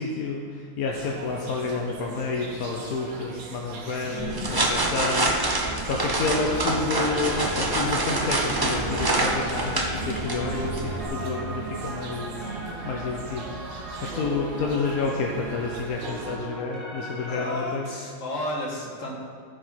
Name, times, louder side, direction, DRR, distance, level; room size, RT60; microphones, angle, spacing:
voice 1, 0.0-17.9, left 4 dB, 80° left, -1 dB, 1.2 m, -30 dB
sound 1, 0.9-16.4, right 4 dB, 65° right, 1.1 m, -38 dB
voice 2, 3.9-4.6 10.3-10.7 17.3-19.1, left 1 dB, 60° left, -2 dB, 1.8 m, -33 dB
sound 2, 4.2-11.1, right 2 dB, 30° right, 0.4 m, -26 dB
sound 3, 6.3-17.6, equal, ahead, 1.0 m, -38 dB
14.0 x 5.1 x 4.4 m, 2.1 s
omnidirectional pair, 1.5 m